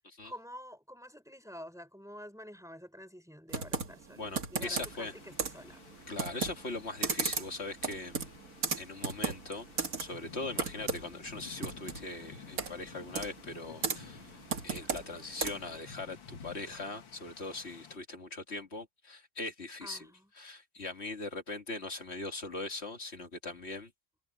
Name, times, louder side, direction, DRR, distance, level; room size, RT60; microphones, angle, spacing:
voice 1, 0.2-5.8 10.7-11.1 19.8-20.3, equal, ahead, 4.5 m, -49 dB
Computer keyboard, 3.5-15.8, right 5 dB, 45° right, 2.2 m, -37 dB
voice 2, 4.2-5.1 6.1-8.2 8.8-14.2 14.6-20.1 20.4-23.9, left 2 dB, 35° left, 2.3 m, -40 dB
sound 1, 4.8-18.0, left 6 dB, 75° left, 2.6 m, -53 dB
omnidirectional pair, 2.1 m